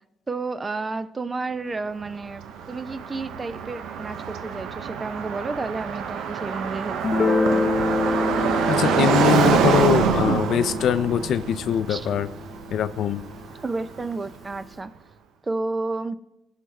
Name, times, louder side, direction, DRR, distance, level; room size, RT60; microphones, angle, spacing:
voice 1, 0.3-7.8 10.2-10.5 11.9-12.1 13.6-14.9 15.4-16.2, right 3 dB, 30° right, 13 dB, 0.5 m, -31 dB
Car passing by, 2.0-14.0, right 7 dB, 85° right, 0.6 m, -26 dB
Guitar, 7.0-12.5, left 3 dB, 35° left, 0.6 m, -27 dB
voice 2, 8.7-12.3 12.7-13.2, left 9 dB, 70° left, 13 dB, 0.4 m, -22 dB
16.0 x 5.7 x 3.2 m, 0.90 s
cardioid pair, 90°, 0 cm